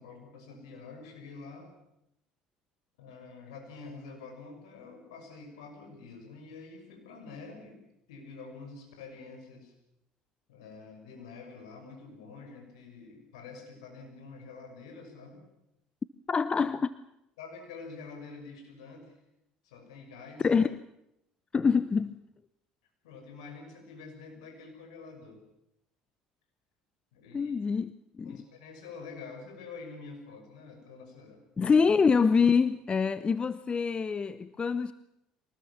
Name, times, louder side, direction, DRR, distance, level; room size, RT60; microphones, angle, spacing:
voice 1, 0.0-1.7 3.0-7.8 8.1-9.7 10.5-15.4 17.4-19.2 19.6-20.5 23.0-25.4 27.1-27.5 28.2-31.7, left 4 dB, 85° left, 6.1 m, -47 dB
voice 2, 16.3-16.9 20.4-20.8 21.5-22.1 27.3-28.4 31.6-34.9, left 5 dB, 30° left, 0.9 m, -25 dB
24.0 x 19.5 x 7.2 m
hypercardioid pair, 65°, 3 cm